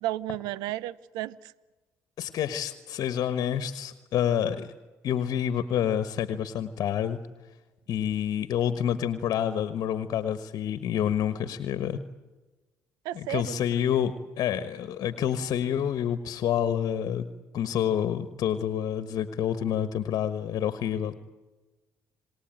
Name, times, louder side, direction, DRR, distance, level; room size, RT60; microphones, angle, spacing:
voice 1, 0.0-1.5 13.0-13.6, right 14 dB, 80° right, 21 dB, 0.8 m, -33 dB
voice 2, 2.2-4.7 5.0-7.2 7.9-12.0 13.1-17.3 17.5-21.1, left 9 dB, 65° left, 12 dB, 1.4 m, -28 dB
27.5 x 19.5 x 9.1 m, 1.2 s
supercardioid pair, 65°, 7 cm